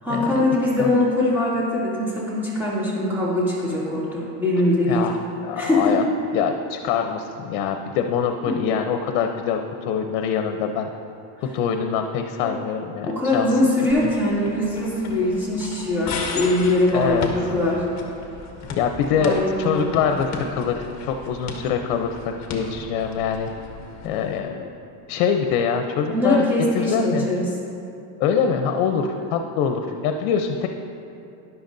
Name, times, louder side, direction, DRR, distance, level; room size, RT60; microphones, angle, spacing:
voice 1, 0.0-5.2 5.6-6.0 12.4-12.5 13.1-17.8 19.1-19.9 26.1-27.5 28.9-29.0, left 1 dB, 5° right, -9 dB, 2.5 m, -22 dB
voice 2, 4.9-6.0 6.3-10.9 11.4-13.5 16.9-17.3 18.7-22.2 22.5-23.5 24.0-24.7 25.1-26.5 26.7-27.3 28.2-30.7, left 7 dB, 80° left, 5 dB, 0.8 m, -24 dB
sound 1, 13.9-24.4, left 3 dB, 40° left, 1.4 m, -35 dB
13.0 x 11.0 x 2.6 m, 2.7 s
cardioid pair, 155°, 42 cm